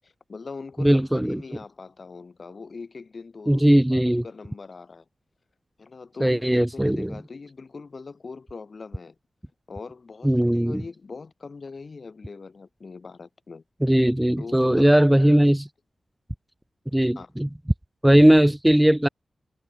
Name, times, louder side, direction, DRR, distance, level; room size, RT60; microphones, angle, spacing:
voice 1, 0.0-5.0 5.8-9.1 9.7-13.6 14.4-15.4 17.1-17.3, left 4 dB, 50° left, 2.9 m, -41 dB
voice 2, 0.8-1.4 3.5-4.2 6.2-7.1 10.2-10.8 13.8-15.7 16.9-17.5 18.0-19.1, right 1 dB, 5° right, 0.6 m, -19 dB
wide cardioid pair, 120°, 0 cm